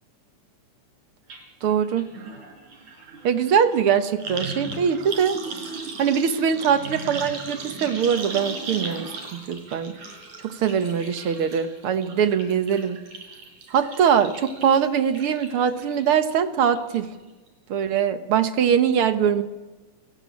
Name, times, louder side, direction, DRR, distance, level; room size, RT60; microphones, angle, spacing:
sound 1, 1.3-1.4 1.7-16.3 16.7-17.2 17.5-17.6, right 3 dB, 75° right, 5.8 m, -37 dB
voice 1, 1.6-2.1 3.2-5.4 6.0-9.9 10.4-13.0 13.7-17.1 17.7-19.4, right 7 dB, 55° right, 9 dB, 1.8 m, -22 dB
28.0 x 18.0 x 8.5 m, 1.2 s
omnidirectional pair, 3.5 m